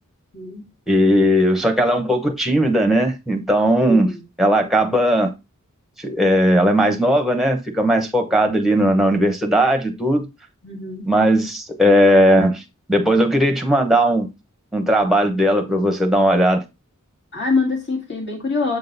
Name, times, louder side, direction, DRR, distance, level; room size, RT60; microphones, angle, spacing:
voice 1, 0.3-0.6 1.9-2.1 3.8-4.2 8.3-8.5 10.6-11.0 17.3-18.8, left 3 dB, 50° left, 2.2 m, -25 dB
voice 2, 0.9-4.1 4.4-5.3 6.0-10.3 11.0-12.6 12.9-14.3 14.7-16.6, equal, ahead, 0.9 m, -17 dB
7.4 x 3.8 x 4.0 m
head